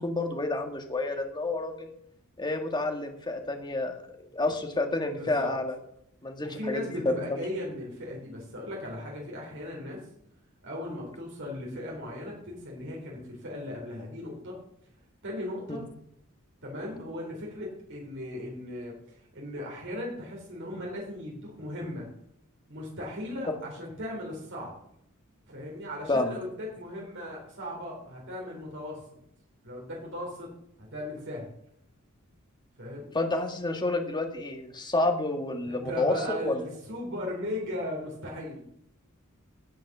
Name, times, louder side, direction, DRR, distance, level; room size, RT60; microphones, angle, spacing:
voice 1, 0.0-1.9 2.4-4.0 4.3-5.7 6.2-7.4 26.1-26.3 33.1-36.1 36.4-36.6, left 2 dB, 20° left, 4 dB, 1.7 m, -29 dB
voice 2, 5.2-5.5 6.4-10.0 10.6-14.6 15.2-15.8 16.6-22.1 22.7-24.7 25.5-29.0 29.6-30.5 30.8-31.5 32.8-33.1 35.6-38.7, left 1 dB, 60° right, -2 dB, 4.3 m, -37 dB
17.5 x 6.3 x 6.1 m, 0.71 s
head